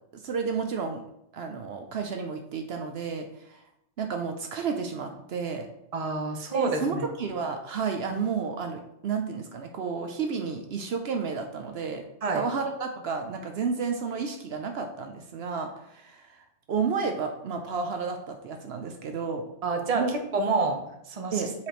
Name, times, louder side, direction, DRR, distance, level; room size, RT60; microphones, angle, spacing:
voice 1, 0.1-1.0 1.3-3.6 4.0-5.7 6.5-12.0 12.3-16.4 16.7-19.4 19.9-20.1 21.3-21.5, right 5 dB, 70° right, 4 dB, 0.9 m, -31 dB
voice 2, 5.9-7.0 12.2-12.4 19.6-21.5, right 3 dB, 35° right, 4 dB, 0.9 m, -28 dB
6.9 x 5.0 x 3.0 m, 0.81 s
omnidirectional pair, 1.1 m